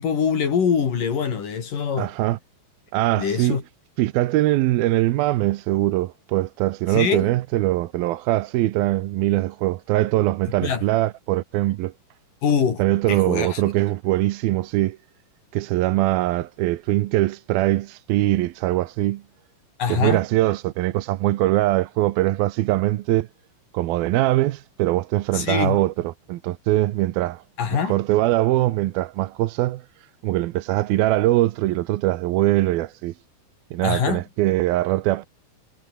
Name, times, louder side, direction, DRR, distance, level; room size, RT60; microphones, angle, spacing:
voice 1, 0.0-2.1 3.1-3.6 6.9-7.3 10.6-10.8 12.4-12.8 13.1-13.6 19.8-20.2 25.3-25.8 27.6-27.9 33.8-34.2, left 7 dB, 60° left, 4.6 m, -23 dB
voice 2, 2.0-2.4 2.9-3.6 4.0-11.9 12.8-15.0 15.5-19.2 19.9-23.3 23.7-27.4 27.8-29.8 30.2-33.1 33.7-35.2, right 16 dB, 80° right, 2.7 m, -22 dB
omnidirectional pair, 4.3 m